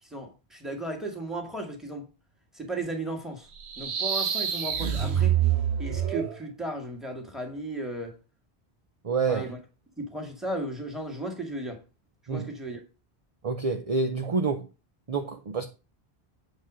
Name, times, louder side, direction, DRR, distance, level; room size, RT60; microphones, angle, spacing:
voice 1, 0.0-2.1 2.5-3.5 3.8-5.4 5.8-8.1 9.3-9.6 10.0-11.8 12.3-12.8, right 1 dB, ahead, 2.1 m, -35 dB
sound 1, 3.6-6.4, right 9 dB, 80° right, 1.2 m, -26 dB
voice 2, 9.0-9.4 12.3-12.4 13.4-14.7 15.1-15.6, right 4 dB, 40° right, 0.7 m, -27 dB
8.3 x 4.3 x 6.3 m
omnidirectional pair, 1.1 m